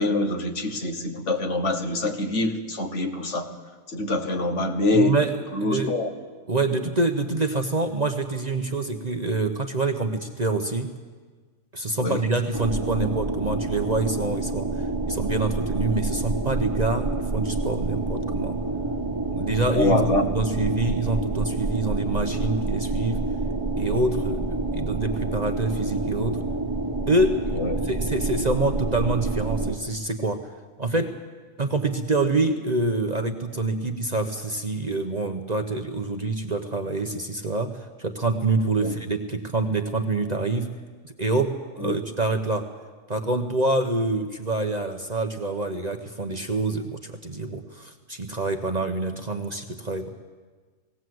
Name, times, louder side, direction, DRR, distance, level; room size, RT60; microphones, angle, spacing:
voice 1, 0.0-3.5 3.9-5.2 5.5-6.1 12.0-12.2 19.7-20.3 27.5-27.7 38.8-38.9 41.8-42.0, left 2 dB, 55° left, 5 dB, 1.7 m, -25 dB
voice 2, 4.9-6.0 6.5-10.9 11.7-18.6 19.3-20.0 20.3-23.3 23.8-26.4 27.1-30.5 30.8-31.2 31.6-40.8 41.0-42.7 43.1-50.1, right 2 dB, 35° right, 5 dB, 1.0 m, -26 dB
sound 1, 12.5-29.7, right 2 dB, 15° right, 1.4 m, -28 dB
19.5 x 17.5 x 7.8 m, 1.4 s
omnidirectional pair, 1.5 m